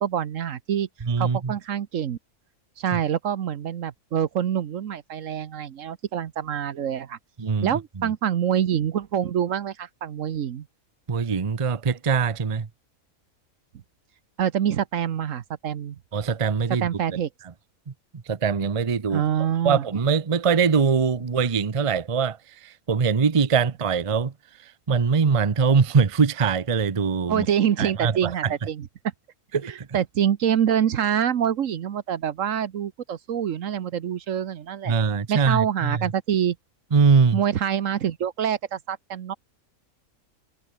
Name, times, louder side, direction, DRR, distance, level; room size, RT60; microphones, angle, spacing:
voice 1, 0.0-0.9 1.2-2.2 2.8-7.2 7.6-10.7 14.4-16.0 16.8-17.3 19.1-19.8 27.3-28.9 29.7-34.9 35.3-36.6 37.3-39.3, right 9 dB, 65° right, 1.2 m, -26 dB
voice 2, 1.0-1.5 2.9-3.0 7.4-7.7 8.0-8.1 11.1-12.7 16.1-16.9 18.3-19.2 19.6-22.4 22.6-24.3 24.9-27.5 27.8-28.3 29.5-29.9 34.9-36.0 36.9-37.4, right 5 dB, 30° right, 0.7 m, -22 dB
omnidirectional pair, 1.5 m